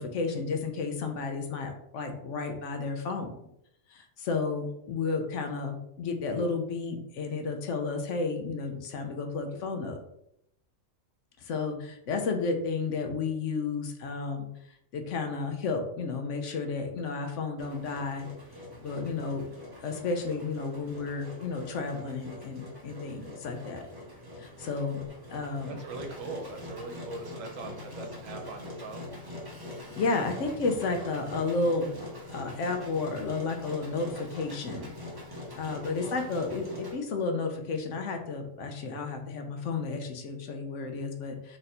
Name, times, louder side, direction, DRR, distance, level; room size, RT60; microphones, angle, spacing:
voice 1, 0.0-3.3 3.9-10.0 11.4-14.5 14.9-18.2 18.8-19.5 19.8-23.9 24.4-25.0 25.3-25.8 30.0-31.9 32.3-34.9 35.6-41.6, left 4 dB, 70° left, 4 dB, 0.9 m, -32 dB
Engine, 17.6-37.0, left 1 dB, 20° right, 0.7 m, -43 dB
voice 2, 25.6-29.1, right 3 dB, 75° right, 4 dB, 1.1 m, -41 dB
3.2 x 2.5 x 4.2 m, 0.76 s
omnidirectional pair, 1.4 m